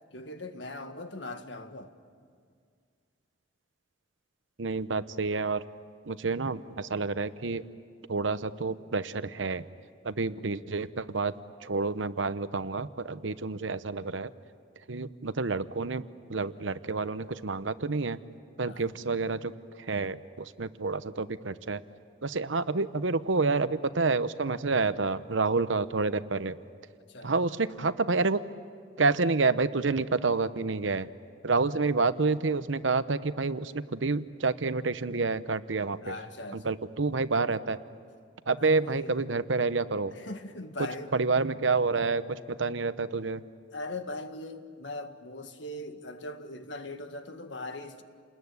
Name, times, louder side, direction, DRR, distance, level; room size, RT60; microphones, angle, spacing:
voice 1, 0.1-1.9 18.6-18.9 27.1-27.3 36.0-36.7 38.6-39.2 40.1-41.1 43.7-48.0, left 2 dB, 75° left, 1.8 m, -40 dB
voice 2, 4.6-5.6 6.1-7.7 8.1-9.6 10.0-11.3 11.6-14.3 14.9-16.0 16.3-18.2 18.6-21.8 22.2-26.6 27.2-28.4 29.0-31.1 31.4-36.2 36.5-37.8 38.5-40.1 40.8-43.4, right 3 dB, 90° right, 0.9 m, -29 dB
29.0 x 20.5 x 9.7 m
head